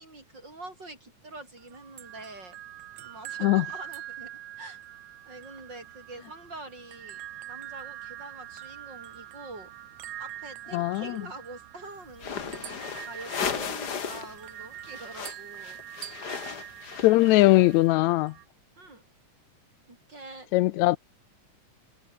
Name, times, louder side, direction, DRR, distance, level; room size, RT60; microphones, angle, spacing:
voice 1, 0.0-2.6 3.0-4.8 5.2-7.2 7.5-9.7 10.2-15.8 16.2-16.4 18.8-19.0 19.9-20.5, right 2 dB, 30° right, 7.8 m, -45 dB
sound 1, 1.6-18.5, right 13 dB, 70° right, 2.5 m, -44 dB
voice 2, 10.7-11.2 17.0-18.3 20.5-21.0, left 18 dB, 80° left, 1.7 m, -20 dB
sound 2, 12.1-14.4 14.6-17.8, left 6 dB, 40° left, 1.7 m, -35 dB
omnidirectional pair, 3.8 m